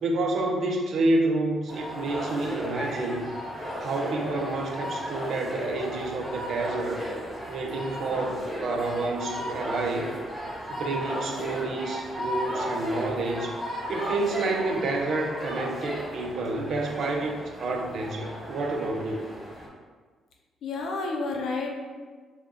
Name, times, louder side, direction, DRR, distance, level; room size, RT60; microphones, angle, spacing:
voice 1, 0.0-3.3 3.8-7.1 7.5-10.1 10.7-13.6 13.9-19.2, right 2 dB, 65° right, 2 dB, 0.5 m, -29 dB
sound 1, 1.7-19.7, equal, 10° right, 1.2 m, -35 dB
voice 2, 20.6-21.8, left 3 dB, 70° left, 0 dB, 0.6 m, -30 dB
3.6 x 2.2 x 3.6 m, 1.5 s
cardioid pair, 90°, 0 cm